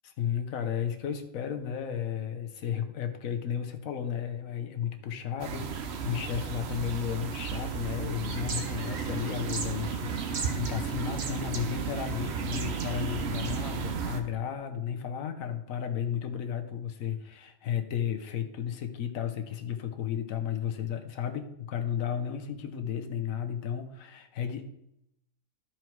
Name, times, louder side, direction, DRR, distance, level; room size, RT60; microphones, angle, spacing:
voice 1, 0.2-24.7, left 9 dB, 70° left, 6 dB, 1.3 m, -33 dB
sound 1, 5.4-14.2, right 6 dB, 55° right, 0.9 m, -34 dB
sound 2, 8.3-13.9, right 4 dB, 80° right, 1.7 m, -41 dB
12.5 x 4.6 x 4.6 m, 0.83 s
omnidirectional pair, 1.5 m